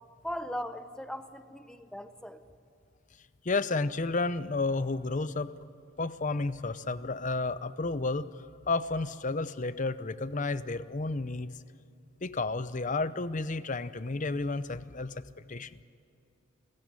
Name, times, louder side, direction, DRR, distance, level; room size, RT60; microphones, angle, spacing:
voice 1, 0.2-2.4, equal, 5° left, 9 dB, 0.9 m, -38 dB
voice 2, 3.4-5.5 6.0-8.3 8.7-11.6 12.2-15.2 15.5-15.8, left 3 dB, 40° left, 15 dB, 0.7 m, -31 dB
29.0 x 15.5 x 9.8 m, 2.5 s
head